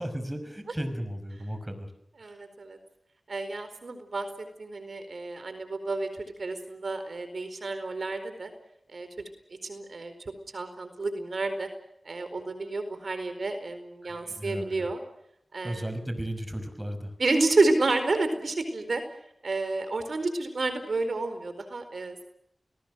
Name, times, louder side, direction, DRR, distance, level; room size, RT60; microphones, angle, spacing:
voice 1, 0.0-1.9 14.0-14.9 15.6-17.1, right 1 dB, 15° right, 9 dB, 5.7 m, -35 dB
voice 2, 2.2-2.8 3.3-6.1 6.4-8.5 8.9-9.1 9.6-10.1 10.5-11.7 12.0-15.0 15.5-15.9 17.2-19.0 19.4-22.2, right 3 dB, 75° right, 9 dB, 4.4 m, -30 dB
30.0 x 20.0 x 6.4 m, 0.74 s
wide cardioid pair, 65°, 0 cm